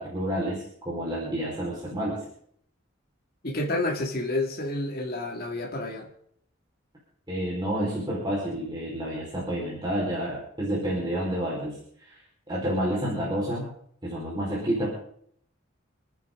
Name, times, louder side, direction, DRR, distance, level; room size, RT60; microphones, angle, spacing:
voice 1, 0.0-2.2 7.3-12.2 12.5-13.7 14.0-14.9, right 1 dB, 20° right, -5 dB, 4.9 m, -29 dB
voice 2, 3.4-6.1, left 2 dB, 50° left, 0 dB, 2.4 m, -29 dB
29.5 x 10.5 x 3.9 m, 0.65 s
head